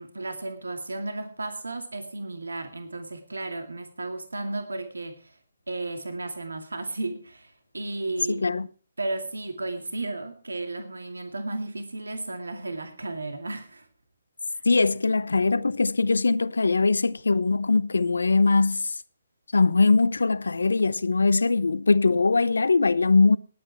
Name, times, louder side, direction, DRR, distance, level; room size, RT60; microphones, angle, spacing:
voice 1, 0.0-5.4 5.7-8.4 9.0-13.9 14.5-14.6, right 2 dB, 90° right, 2.3 m, -34 dB
voice 2, 8.3-8.7 14.6-19.0 19.5-23.4, left 3 dB, 80° left, 0.8 m, -21 dB
19.0 x 8.8 x 4.6 m
figure-of-eight pair, 140°, 0 cm